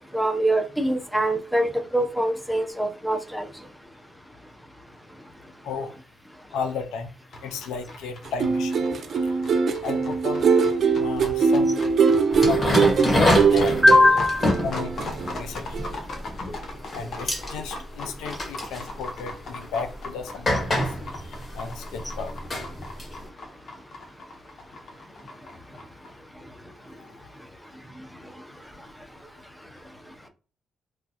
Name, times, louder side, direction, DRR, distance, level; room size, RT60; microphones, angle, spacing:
voice 1, 0.1-3.5 13.8-14.5, left 1 dB, ahead, 0.6 m, -21 dB
voice 2, 6.5-7.1 7.4-8.7 9.8-10.5 11.0-11.7 12.4-13.8 14.6-15.8 16.9-20.8 21.3-22.3 27.0-27.1, left 5 dB, 90° left, 0.4 m, -34 dB
sound 1, 7.3-26.1, left 2 dB, 60° left, 0.7 m, -39 dB
sound 2, 8.3-15.4 15.7-15.9, right 5 dB, 60° right, 0.4 m, -22 dB
sound 3, 12.3-16.5 16.8-17.0 17.3-17.5 18.3-18.9 19.6-19.7 20.5-23.2, left 1 dB, 40° left, 1.5 m, -26 dB
3.0 x 2.2 x 2.8 m
cardioid pair, 75°, 0 cm